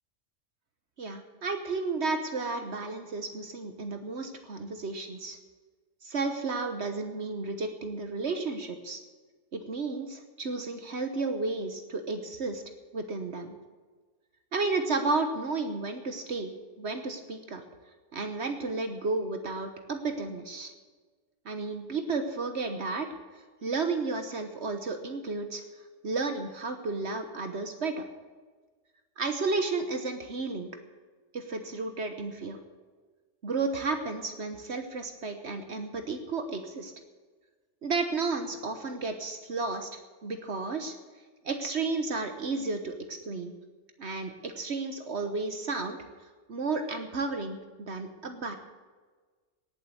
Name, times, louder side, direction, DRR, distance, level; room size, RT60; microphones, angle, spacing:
voice 1, 1.0-5.4 6.0-9.0 9.5-12.6 12.9-13.5 14.5-17.6 18.1-20.7 21.4-23.1 23.3-25.6 26.0-28.0 29.2-30.7 31.3-32.6 33.4-36.9 37.8-39.9 40.2-40.9 41.4-43.5 44.0-46.0 46.5-48.6, right 3 dB, 60° right, 7 dB, 1.4 m, -32 dB
18.0 x 7.7 x 7.8 m, 1.4 s
omnidirectional pair, 1.3 m